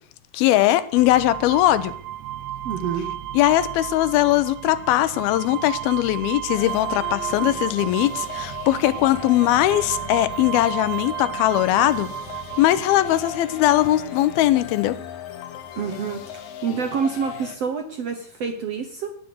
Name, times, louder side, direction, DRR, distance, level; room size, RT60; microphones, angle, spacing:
voice 1, 0.3-1.9 3.3-12.1 12.6-15.0, left 14 dB, 85° left, 15 dB, 2.7 m, -20 dB
sound 1, 1.0-14.4, right 12 dB, 85° right, 2.7 m, -33 dB
voice 2, 2.6-3.1 15.8-19.1, right 6 dB, 65° right, 6 dB, 1.6 m, -27 dB
sound 2, 6.6-17.6, left 9 dB, 70° left, 2.7 m, -37 dB
19.0 x 6.5 x 7.9 m, 0.63 s
omnidirectional pair, 4.3 m